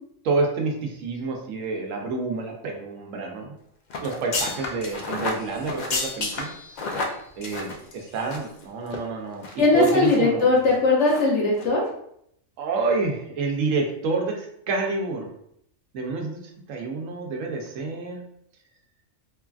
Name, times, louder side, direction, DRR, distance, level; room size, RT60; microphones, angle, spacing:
voice 1, 0.2-3.5 4.0-6.5 7.4-10.5 12.6-15.3 15.9-16.4 16.7-18.2, right 4 dB, 80° right, 1 dB, 1.0 m, -28 dB
sound 1, 3.9-8.6 8.9-9.0 9.4-10.2 10.6-10.7 11.1-11.3 11.5-11.7, left 3 dB, 85° left, 0.4 m, -31 dB
voice 2, 9.6-11.8, left 3 dB, 65° left, -3 dB, 1.1 m, -19 dB
3.1 x 2.3 x 2.3 m, 0.71 s
omnidirectional pair, 1.4 m